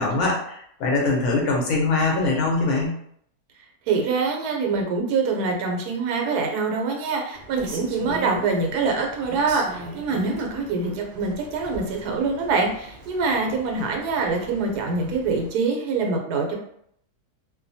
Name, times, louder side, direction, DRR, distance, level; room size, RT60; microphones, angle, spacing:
voice 1, 0.0-3.0, left 3 dB, 70° left, -1 dB, 1.0 m, -22 dB
voice 2, 3.9-16.6, right 4 dB, 75° right, 1 dB, 1.1 m, -25 dB
Rain, 7.3-15.5, equal, 60° right, 0.7 m, -40 dB
2.7 x 2.2 x 2.6 m, 0.68 s
omnidirectional pair, 1.7 m